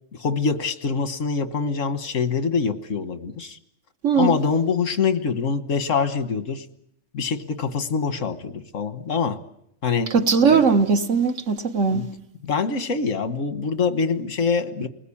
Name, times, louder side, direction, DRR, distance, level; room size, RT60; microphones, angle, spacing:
voice 1, 0.1-3.6 4.2-6.6 7.1-9.4 9.8-10.1 10.5-10.8 11.9-12.1 12.4-14.9, left 5 dB, 90° left, 1.7 m, -24 dB
voice 2, 4.0-4.4 10.1-12.1, right 5 dB, 80° right, 1.8 m, -19 dB
29.5 x 20.0 x 8.6 m
omnidirectional pair, 1.3 m